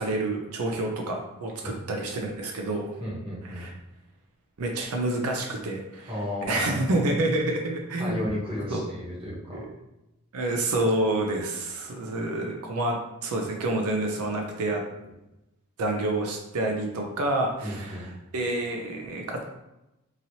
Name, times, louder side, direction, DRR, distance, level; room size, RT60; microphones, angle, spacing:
voice 1, 0.0-2.9 3.4-3.7 4.6-6.1 6.5-8.3 8.7-8.8 9.5-9.6 10.3-14.8 15.8-19.4, right 2 dB, 80° right, 1 dB, 0.4 m, -28 dB
voice 2, 3.0-3.7 6.1-6.8 8.0-9.7 15.0-15.1 17.6-18.1, left 1 dB, 25° right, -6 dB, 0.9 m, -33 dB
3.0 x 2.7 x 2.7 m, 0.94 s
head